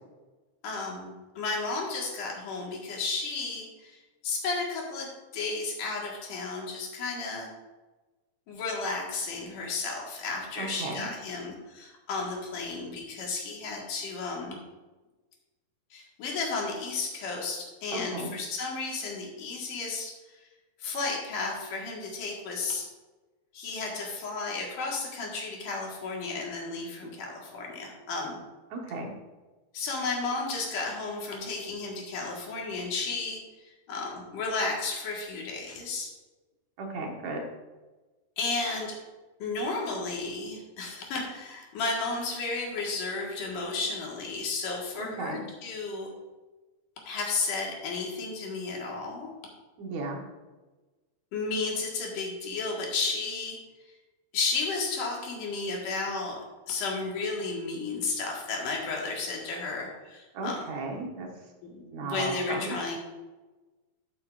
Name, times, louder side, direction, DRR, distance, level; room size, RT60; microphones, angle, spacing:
voice 1, 0.6-7.5 8.5-14.6 15.9-20.1 20.8-22.9 23.5-28.4 29.7-36.1 38.4-39.0 39.4-46.1 47.1-49.3 51.3-53.6 54.3-56.4 56.7-60.6 61.6-63.0, left 3 dB, 75° left, -1 dB, 3.2 m, -33 dB
voice 2, 10.6-11.1 17.9-18.3 28.7-29.1 36.8-37.4 45.0-45.4 49.8-50.2 60.3-61.3 61.9-62.8, right 3 dB, 65° right, 1 dB, 2.4 m, -35 dB
12.0 x 8.1 x 2.5 m, 1.2 s
omnidirectional pair, 3.8 m